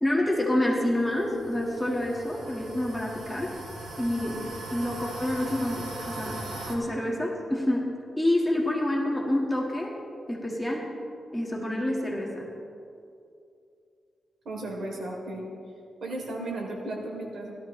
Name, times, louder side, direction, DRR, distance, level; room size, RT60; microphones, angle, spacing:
voice 1, 0.0-3.5 4.0-6.4 6.7-9.9 10.3-11.0 11.3-12.5, left 1 dB, 10° left, -2 dB, 1.8 m, -28 dB
sound 1, 0.8-6.7, right 2 dB, 85° right, 2.5 m, -40 dB
voice 2, 14.4-15.4 16.0-17.5, right 1 dB, 70° right, -2 dB, 3.2 m, -34 dB
16.5 x 13.0 x 3.2 m, 2.5 s
wide cardioid pair, 130°, 0 cm